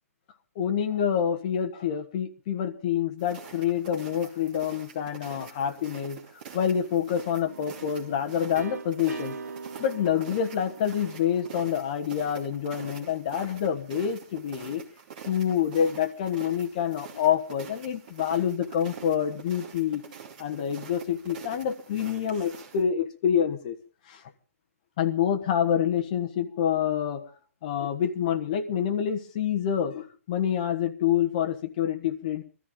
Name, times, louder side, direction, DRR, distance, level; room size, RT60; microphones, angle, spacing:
voice 1, 0.5-6.2 6.5-9.4 9.8-14.8 15.2-20.0 20.4-23.8 24.1-24.2 25.0-27.2 27.6-32.4, left 9 dB, 30° left, 6 dB, 1.2 m, -27 dB
sound 1, 3.2-22.8, right 7 dB, 35° right, 2.6 m, -46 dB
sound 2, 7.5-13.2, right 5 dB, 75° right, 1.0 m, -43 dB
22.0 x 13.5 x 3.7 m, 0.35 s
hypercardioid pair, 170°, 8 cm